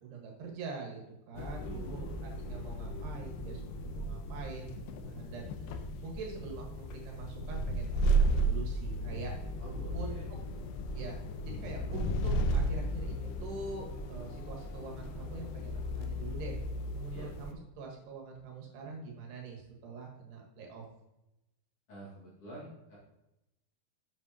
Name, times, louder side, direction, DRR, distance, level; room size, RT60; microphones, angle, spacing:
voice 1, 0.0-2.1 2.5-5.5 6.0-9.3 9.9-10.2 10.9-16.7 16.9-20.9, right 4 dB, 80° right, 0 dB, 3.6 m, -44 dB
voice 2, 1.3-2.2 9.6-10.3 17.1-17.3 21.9-23.0, equal, 45° left, -6 dB, 2.3 m, -47 dB
sound 1, 1.4-17.5, right 1 dB, 90° left, 2.8 m, -34 dB
8.2 x 7.4 x 2.8 m, 0.92 s
omnidirectional pair, 4.6 m